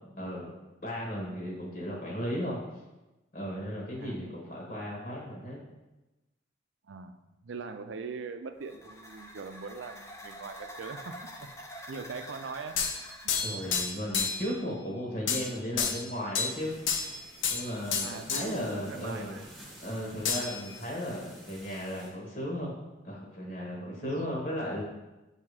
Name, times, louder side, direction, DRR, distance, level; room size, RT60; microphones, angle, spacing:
voice 1, 0.2-0.5 0.8-2.6 3.3-5.6 13.4-17.1 17.5-19.4 19.8-22.7 23.0-24.8, equal, 45° left, -3 dB, 1.2 m, -35 dB
voice 2, 4.0-4.3 6.8-11.5 11.9-12.8 13.2-13.6 18.0-19.5 23.9-24.4, right 4 dB, 80° right, 8 dB, 0.5 m, -42 dB
sound 1, 8.6-14.7, equal, 15° left, 0.5 m, -47 dB
sound 2, 12.8-14.5 15.3-15.5 15.8-16.6 16.9-17.6 17.9-18.5 20.2-20.8, left 6 dB, 85° left, 0.6 m, -30 dB
sound 3, 16.4-22.1, equal, ahead, 1.0 m, -51 dB
7.2 x 2.8 x 4.8 m, 1.0 s
head